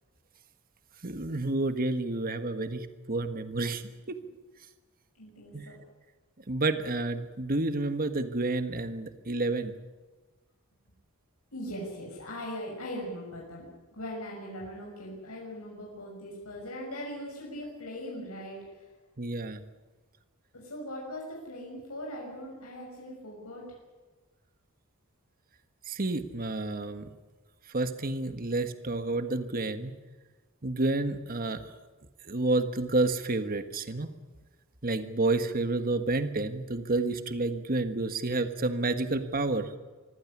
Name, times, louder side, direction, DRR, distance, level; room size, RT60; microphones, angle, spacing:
voice 1, 1.0-3.8 4.1-4.2 5.5-5.7 6.5-9.7 19.2-19.6 25.9-27.1 27.7-30.0 30.6-31.7 32.2-34.1 34.8-39.7, right 2 dB, 40° right, 9 dB, 1.5 m, -30 dB
voice 2, 5.1-5.8 11.5-18.9 20.5-23.7, equal, 85° left, -2 dB, 6.5 m, -40 dB
25.0 x 15.5 x 9.9 m, 1.3 s
head